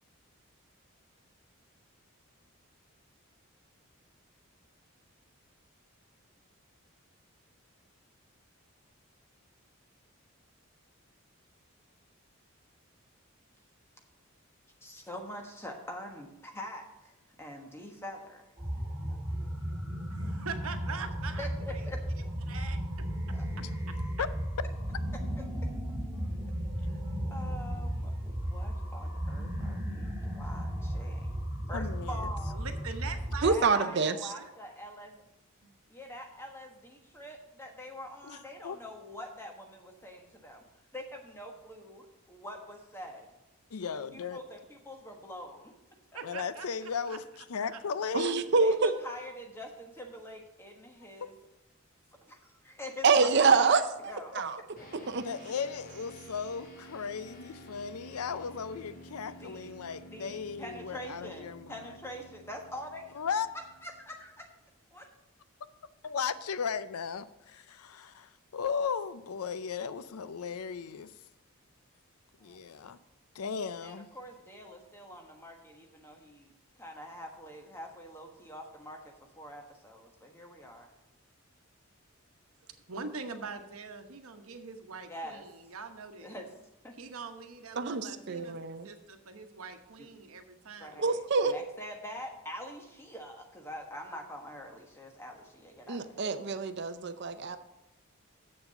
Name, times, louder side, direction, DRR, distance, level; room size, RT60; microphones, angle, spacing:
voice 1, 14.8-18.7 19.1-19.2 21.4-22.0 23.3-24.1 25.4-25.5 26.8-27.0 27.3-31.3 31.7-32.6 33.4-35.2 35.9-40.6 40.9-43.3 43.9-45.7 48.6-51.3 52.2-54.4 54.8-54.9 59.4-59.7 60.1-63.2 63.5-64.5 64.9-65.1 72.4-72.6 73.8-76.5 76.8-80.9 85.1-85.4 86.2-86.5 86.8-87.0 90.0-90.1 90.8-96.2, equal, 10° left, 2 dB, 1.3 m, -45 dB
sound 1, 18.6-33.5, equal, 15° right, 2.3 m, -35 dB
voice 2, 20.1-21.9 22.5-22.8 23.9-24.0 32.5-34.0 34.3-34.5 35.6-35.7 46.1-47.2 47.7-47.8 82.6-86.4 87.0-88.6 88.8-91.0, right 5 dB, 80° right, 6 dB, 1.1 m, -43 dB
voice 3, 31.7-32.3 38.2-38.8 43.7-44.4 46.2-48.4 51.2-51.3 55.2-61.9 63.1-63.5 66.0-71.1 72.4-73.0 73.3-74.1, left 6 dB, 90° left, 14 dB, 0.5 m, -36 dB
voice 4, 33.4-34.1 48.1-48.9 53.0-54.6 55.1-55.2 87.8-88.9 91.0-91.5 95.9-97.6, right 4 dB, 50° right, 10 dB, 0.6 m, -26 dB
sound 2, 54.8-64.4, right 1 dB, 40° left, 1.8 m, -52 dB
7.5 x 7.0 x 6.7 m, 0.96 s
head